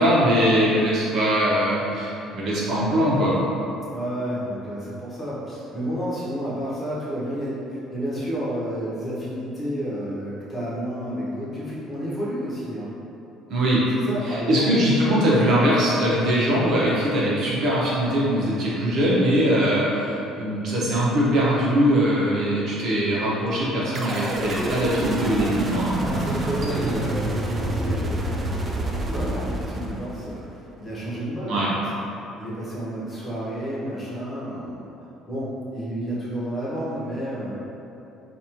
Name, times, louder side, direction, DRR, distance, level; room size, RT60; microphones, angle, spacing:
voice 1, 0.0-3.3 13.5-13.8 14.2-26.1 26.5-27.0 31.5-31.7, equal, 55° right, -7 dB, 1.1 m, -21 dB
voice 2, 3.9-12.9 13.9-14.9 26.0-31.6 32.4-34.9 35.3-37.6, equal, 20° left, -8 dB, 1.2 m, -31 dB
sound 1, 24.0-30.4, right 1 dB, 25° right, 0.4 m, -28 dB
4.1 x 2.7 x 3.0 m, 2.8 s
cardioid pair, 120°, 0 cm